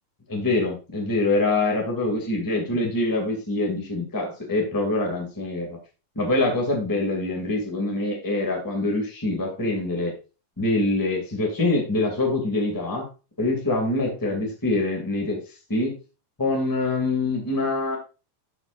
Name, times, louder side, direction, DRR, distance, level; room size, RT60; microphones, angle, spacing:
voice 1, 0.3-5.7 6.2-10.1 10.6-13.0 13.4-15.4 15.7-15.9 16.4-18.0, left 2 dB, 5° left, 1 dB, 1.9 m, -24 dB
12.0 x 5.7 x 2.6 m, 0.31 s
omnidirectional pair, 3.9 m